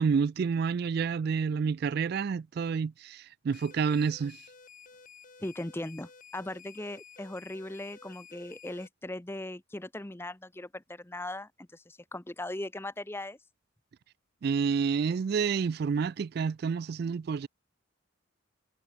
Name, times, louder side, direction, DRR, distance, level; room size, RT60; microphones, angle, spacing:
voice 1, 0.0-4.4 14.4-17.5, right 6 dB, 50° right, 0.3 m, -29 dB
sound 1, 3.5-8.9, left 6 dB, 40° left, 2.7 m, -53 dB
voice 2, 5.4-13.4, left 1 dB, 10° left, 0.7 m, -39 dB
head